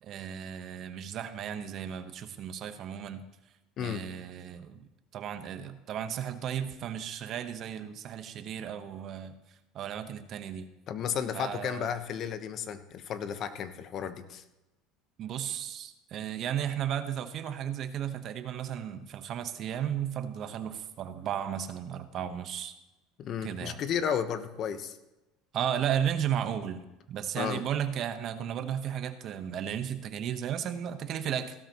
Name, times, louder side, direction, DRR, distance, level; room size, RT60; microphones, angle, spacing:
voice 1, 0.0-3.2 3.8-9.4 9.7-10.7 11.3-11.9 15.2-22.7 23.4-23.8 25.5-26.8 27.1-31.5, right 9 dB, 50° right, 9 dB, 1.1 m, -34 dB
voice 2, 10.9-14.4 23.2-25.0 27.3-27.6, left 8 dB, 50° left, 10 dB, 1.1 m, -33 dB
16.5 x 12.5 x 3.1 m, 0.99 s
supercardioid pair, 110°, 0 cm